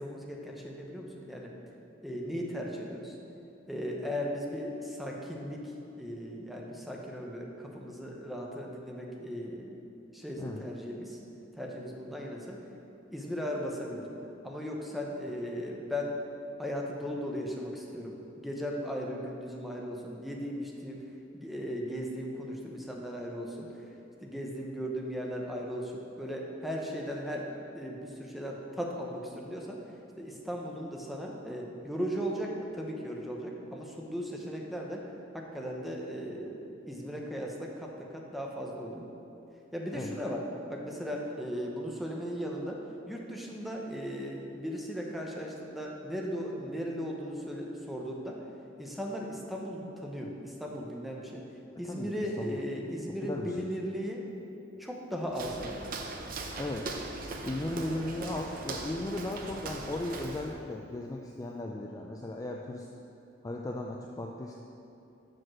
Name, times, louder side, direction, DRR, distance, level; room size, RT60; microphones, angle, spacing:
voice 1, 0.0-1.5 2.0-3.2 3.7-5.7 6.0-9.8 10.1-11.2 11.6-12.6 13.1-14.1 14.4-16.2 16.6-21.0 21.3-23.7 24.2-29.8 30.2-35.0 35.3-39.1 39.7-42.8 43.1-48.4 48.8-51.4 51.8-54.3 54.8-55.9, equal, ahead, -1 dB, 0.7 m, -37 dB
voice 2, 53.3-53.7 56.6-56.9 57.4-62.9 63.4-64.5, left 1 dB, 20° left, 0 dB, 0.3 m, -36 dB
Walk footsteps, 55.3-60.6, right 3 dB, 50° right, 0.6 m, -40 dB
5.8 x 5.1 x 6.1 m, 2.9 s
head